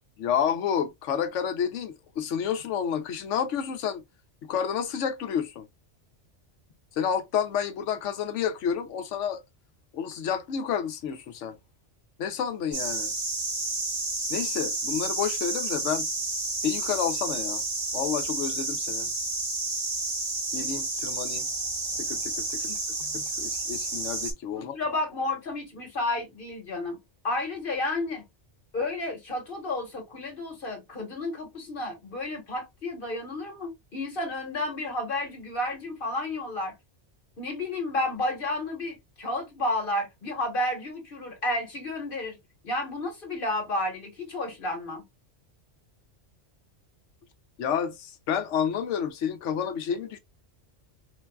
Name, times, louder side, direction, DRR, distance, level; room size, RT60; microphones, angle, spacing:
voice 1, 0.2-4.0 4.5-5.7 6.9-9.4 9.9-11.6 12.2-13.1 14.3-16.1 16.6-17.6 17.9-19.1 20.5-21.5 22.0-22.7 23.1-24.8 47.6-50.2, left 8 dB, 80° left, 1.0 m, -30 dB
sound 1, 12.7-24.3, right 2 dB, 85° right, 2.0 m, -30 dB
voice 2, 24.6-27.0 27.2-28.2 28.7-36.7 37.4-42.4 42.6-45.0, left 2 dB, 50° left, 1.3 m, -31 dB
4.4 x 2.3 x 2.2 m
omnidirectional pair, 1.2 m